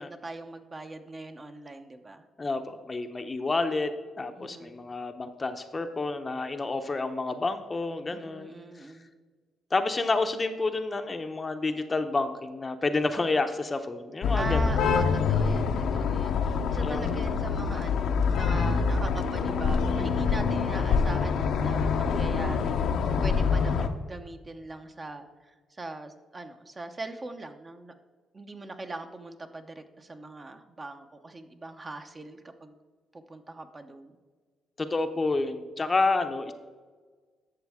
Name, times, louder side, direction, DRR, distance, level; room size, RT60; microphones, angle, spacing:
voice 1, 0.0-2.2 4.3-4.8 8.1-9.1 14.3-22.8 23.2-27.9 28.3-32.7 33.1-34.2, right 2 dB, 30° right, 7 dB, 0.8 m, -41 dB
voice 2, 2.4-3.9 4.2-8.6 9.7-14.9 16.8-17.1 34.8-36.5, left 3 dB, 25° left, 8 dB, 0.7 m, -29 dB
sound 1, 14.2-23.9, left 5 dB, 75° left, 0.7 m, -26 dB
11.5 x 6.9 x 3.6 m, 1.4 s
cardioid pair, 90°, 0 cm